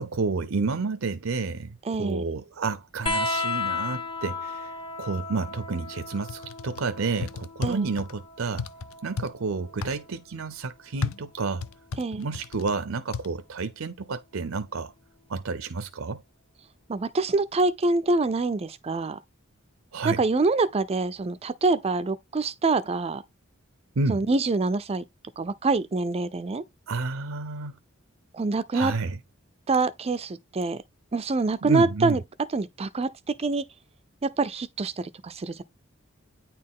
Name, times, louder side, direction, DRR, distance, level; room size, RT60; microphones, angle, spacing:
voice 1, 0.0-8.7 9.0-11.7 12.1-14.9 15.3-16.2 19.9-20.2 24.0-24.2 26.9-27.8 28.7-29.2 31.6-32.2, right 4 dB, 70° right, 0.6 m, -30 dB
voice 2, 1.9-2.2 7.6-7.9 12.0-12.3 16.9-19.2 20.0-23.2 24.1-25.0 25.4-26.6 28.3-28.9 29.7-30.8 31.1-32.2 32.5-33.6 34.2-35.6, right 3 dB, 30° right, 0.4 m, -25 dB
sound 1, 3.1-10.1 11.5-12.3 13.6-13.7, left 3 dB, 25° left, 0.8 m, -34 dB
sound 2, 6.3-6.8 7.2-8.1 8.6-9.3 9.8-10.0 11.0-12.7 13.1-13.3, left 5 dB, 85° left, 0.5 m, -33 dB
9.3 x 4.2 x 3.6 m
head